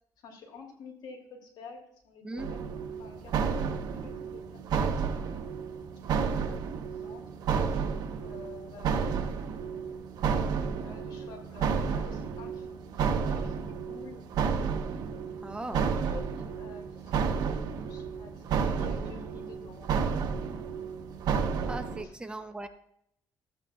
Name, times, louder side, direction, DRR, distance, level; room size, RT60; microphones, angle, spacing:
voice 1, 0.2-2.6 3.0-3.7 4.0-5.3 6.0-6.7 7.0-7.3 7.9-10.2 10.6-12.8 13.1-14.3 15.3-20.5 22.0-22.2, left 4 dB, 75° left, 1 dB, 2.7 m, -50 dB
sound 1, 2.4-22.0, right 6 dB, 70° right, 1.1 m, -31 dB
voice 2, 15.4-15.8 21.7-22.7, right 2 dB, 15° right, 8 dB, 0.7 m, -38 dB
14.5 x 8.8 x 2.4 m, 0.73 s
cardioid pair, 125°, 7 cm